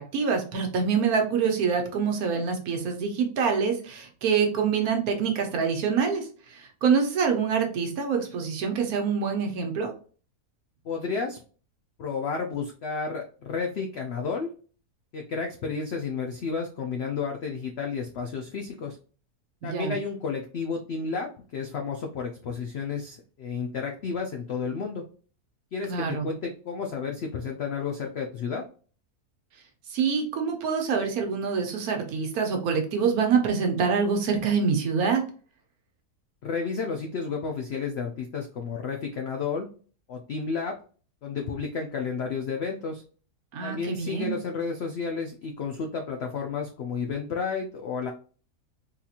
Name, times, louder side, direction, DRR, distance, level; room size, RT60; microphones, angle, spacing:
voice 1, 0.0-9.9 19.6-19.9 25.9-26.3 29.9-35.2 43.5-44.4, right 6 dB, 65° right, 3 dB, 1.2 m, -26 dB
voice 2, 10.8-11.4 12.0-14.5 15.1-19.0 19.6-25.0 25.7-28.6 36.4-39.7 40.1-40.8 41.2-43.0 43.6-48.1, left 5 dB, 85° left, 2 dB, 0.5 m, -31 dB
3.9 x 2.8 x 2.4 m, 0.39 s
omnidirectional pair, 1.7 m